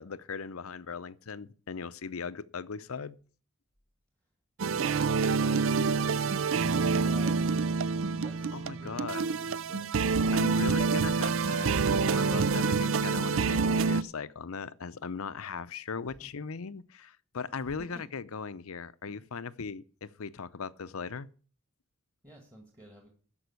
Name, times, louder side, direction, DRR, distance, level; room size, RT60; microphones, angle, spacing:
voice 1, 0.0-3.2 8.5-9.2 10.3-21.3, left 5 dB, 75° left, 0.6 m, -39 dB
voice 2, 4.6-5.1 5.4-7.4 8.2-10.2 17.6-17.9 19.0-19.2 22.2-23.1, right 1 dB, 15° right, 2.0 m, -50 dB
sound 1, 4.6-14.0, right 4 dB, 60° right, 0.5 m, -27 dB
13.0 x 5.4 x 8.1 m
head